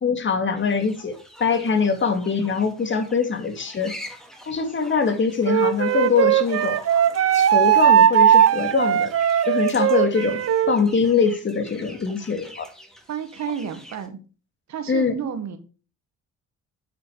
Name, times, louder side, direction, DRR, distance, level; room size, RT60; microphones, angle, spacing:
voice 1, 0.0-3.9 4.5-6.8 7.3-9.1 9.5-12.6 14.9-15.1, left 5 dB, 40° left, 8 dB, 1.9 m, -23 dB
sound 1, 0.6-14.1, equal, ahead, 2.4 m, -45 dB
Wind instrument woodwind instrument, 5.4-10.7, right 10 dB, 50° right, 0.7 m, -18 dB
voice 2, 13.1-14.2 14.7-15.6, right 8 dB, 65° right, 9 dB, 1.8 m, -31 dB
9.4 x 6.2 x 4.9 m, 0.36 s
cardioid pair, 90°, 30 cm